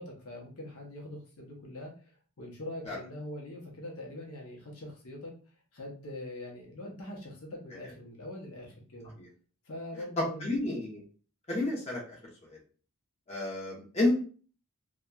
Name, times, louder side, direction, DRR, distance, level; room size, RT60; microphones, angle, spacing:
voice 1, 0.0-5.3 5.7-9.1 9.6-10.5, left 1 dB, 70° left, 0 dB, 0.7 m, -43 dB
voice 2, 10.2-11.0 11.5-12.2 12.4-12.6 13.3-14.2, left 2 dB, 30° left, -3 dB, 0.8 m, -30 dB
2.8 x 2.3 x 2.3 m, 0.40 s
head